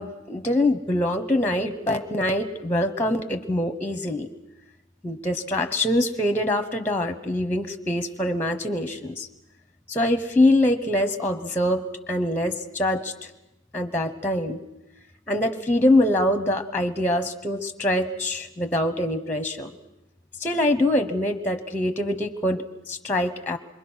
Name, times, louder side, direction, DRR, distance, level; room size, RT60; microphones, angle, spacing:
voice 1, 0.0-4.3 5.0-9.3 9.9-13.3 13.7-14.6 15.3-19.7 20.4-23.6, left 1 dB, 10° left, 8 dB, 0.9 m, -24 dB
27.0 x 23.0 x 6.3 m, 0.94 s
head